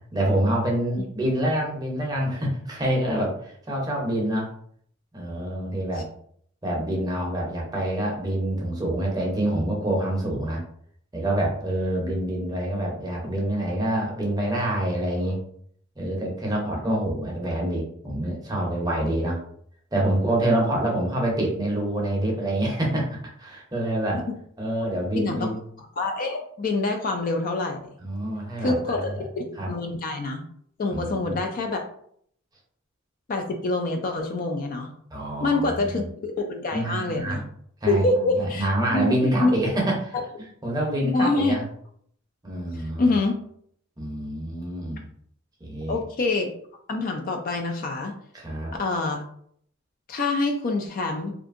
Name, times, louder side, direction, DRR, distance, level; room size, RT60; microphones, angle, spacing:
voice 1, 0.1-4.5 5.1-6.1 6.6-10.6 11.1-15.4 16.0-19.4 19.9-24.2 24.6-25.6 28.0-29.0 29.6-29.7 30.9-31.3 35.1-36.1 36.7-37.4 37.8-38.0 38.4-41.6 42.4-43.2 44.0-45.0 45.6-46.0 48.3-48.7, right 1 dB, 20° right, -2 dB, 0.6 m, -26 dB
voice 2, 25.2-25.5 26.0-27.9 28.6-30.4 30.8-31.9 33.3-34.9 35.4-37.4 37.9-39.5 41.0-41.5 42.7-43.3 45.9-46.5 46.9-48.1 48.8-49.2 50.1-51.3, left 2 dB, 40° left, 4 dB, 0.3 m, -26 dB
2.6 x 2.5 x 2.5 m, 0.64 s
head